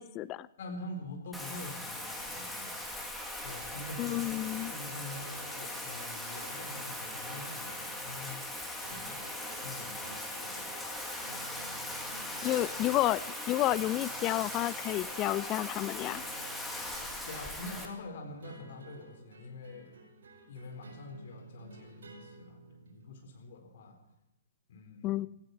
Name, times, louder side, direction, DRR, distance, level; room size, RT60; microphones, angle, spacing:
voice 1, 0.0-0.5 4.0-4.7 12.4-13.2 13.5-16.2 25.0-25.3, left 15 dB, 25° left, 19 dB, 0.4 m, -30 dB
voice 2, 0.6-2.8 3.4-4.2 4.6-9.2 9.6-10.2 10.4-10.7 17.3-19.9 20.5-24.0 24.7-25.2, left 2 dB, 50° left, 3 dB, 4.1 m, -45 dB
Bathtub (filling or washing), 1.3-17.9, left 1 dB, 5° left, 1.9 m, -40 dB
sound 1, 4.0-23.2, right 3 dB, 55° right, 4.7 m, -53 dB
17.0 x 15.0 x 4.5 m, 0.91 s
figure-of-eight pair, 120°, 0 cm